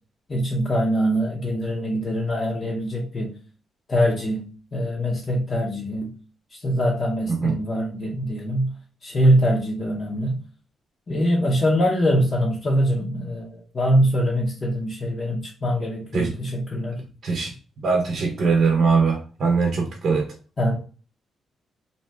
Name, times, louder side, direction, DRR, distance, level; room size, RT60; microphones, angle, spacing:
voice 1, 0.3-3.4 3.9-6.1 6.5-8.7 9.0-10.4 11.1-17.0 20.6-20.8, equal, 40° left, -4 dB, 0.7 m, -23 dB
voice 2, 17.8-20.3, right 4 dB, 55° right, 1 dB, 0.6 m, -21 dB
2.7 x 2.1 x 3.2 m, 0.36 s
cardioid pair, 95°, 0 cm